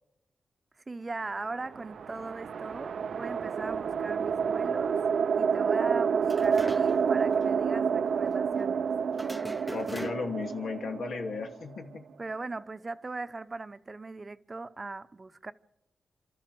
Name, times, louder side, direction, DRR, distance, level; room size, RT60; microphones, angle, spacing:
voice 1, 0.9-5.0 5.3-8.9 12.2-15.5, right 3 dB, 35° right, 0.9 m, -39 dB
sound 1, 1.5-12.0, right 6 dB, 75° right, 0.7 m, -29 dB
sound 2, 6.2-7.2 7.4-7.5 9.1-10.5, right 1 dB, 10° right, 0.7 m, -41 dB
voice 2, 9.7-12.0, left 4 dB, 75° left, 2.8 m, -35 dB
28.5 x 13.0 x 7.8 m
cardioid pair, 65°, 0 cm